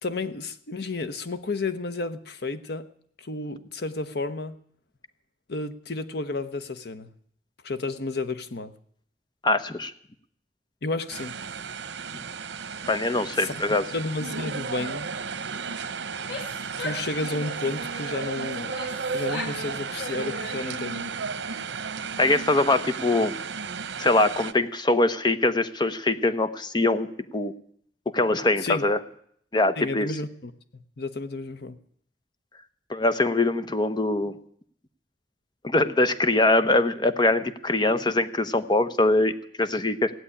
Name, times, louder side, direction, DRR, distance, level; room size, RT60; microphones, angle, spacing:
voice 1, 0.0-2.9 3.2-4.6 5.5-7.1 7.6-8.7 10.8-11.3 13.4-13.5 13.9-15.1 16.8-18.7 19.1-21.1 28.6-28.9 29.8-31.8, left 3 dB, 60° left, 11 dB, 1.0 m, -32 dB
voice 2, 9.4-9.9 12.9-13.8 22.2-23.4 24.0-27.1 27.3-27.5 28.1-29.0 29.5-30.1 32.9-34.3 35.6-40.1, left 2 dB, 25° left, 11 dB, 0.8 m, -23 dB
sound 1, 11.1-24.5, right 5 dB, 85° right, 0.9 m, -34 dB
Female speech woman speaking / Yell, 16.1-17.7 18.3-19.6 19.9-20.9, left 2 dB, 80° left, 3.0 m, -38 dB
16.5 x 7.7 x 9.9 m, 0.64 s
head